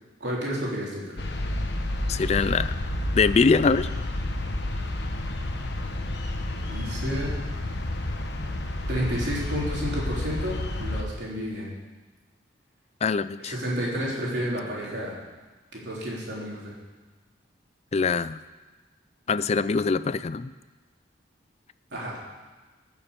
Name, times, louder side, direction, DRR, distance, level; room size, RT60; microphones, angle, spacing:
voice 1, 0.2-1.2 6.5-7.3 8.9-11.7 13.4-15.2 15.7-16.7 21.9-22.2, equal, 60° right, -5 dB, 4.0 m, -31 dB
sound 1, 1.2-11.0, left 1 dB, 60° left, 1.3 m, -30 dB
voice 2, 2.1-2.7 3.1-3.9 13.0-13.6 17.9-18.4 19.3-20.5, left 4 dB, 35° left, 15 dB, 0.3 m, -23 dB
16.5 x 7.1 x 7.0 m, 1.3 s
head